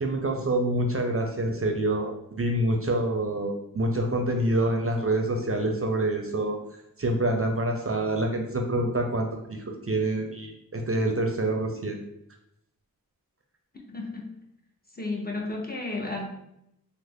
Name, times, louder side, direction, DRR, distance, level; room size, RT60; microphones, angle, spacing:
voice 1, 0.0-6.6 7.0-12.0, right 1 dB, 40° right, 2 dB, 0.4 m, -26 dB
voice 2, 13.9-14.3 15.0-16.3, left 2 dB, 25° left, -1 dB, 0.6 m, -32 dB
3.1 x 2.0 x 3.5 m, 0.79 s
wide cardioid pair, 45°, 35 cm